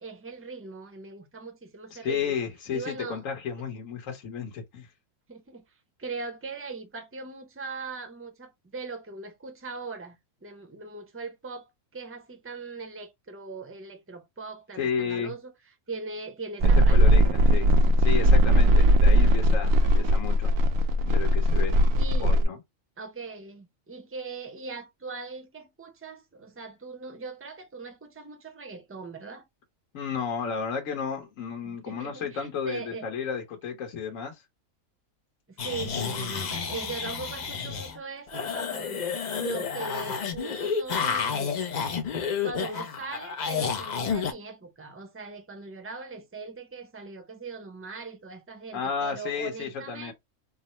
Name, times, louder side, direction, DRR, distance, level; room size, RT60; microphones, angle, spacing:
voice 1, 0.0-2.4 2.7-3.2 5.3-5.6 6.0-15.5 15.9-17.4 22.0-22.4 23.0-29.4 31.6-33.1 35.5-41.6 42.4-50.1, right 4 dB, 15° right, 0.5 m, -40 dB
voice 2, 1.9-4.9 14.8-15.3 16.6-17.7 18.0-20.5 21.0-21.8 22.2-22.6 29.9-34.4 48.7-50.1, left 6 dB, 70° left, 1.4 m, -32 dB
sound 1, 16.6-22.4, equal, 75° right, 1.0 m, -19 dB
sound 2, 35.6-38.0 38.3-44.3, left 6 dB, 55° left, 0.5 m, -30 dB
3.5 x 2.0 x 4.1 m
omnidirectional pair, 1.4 m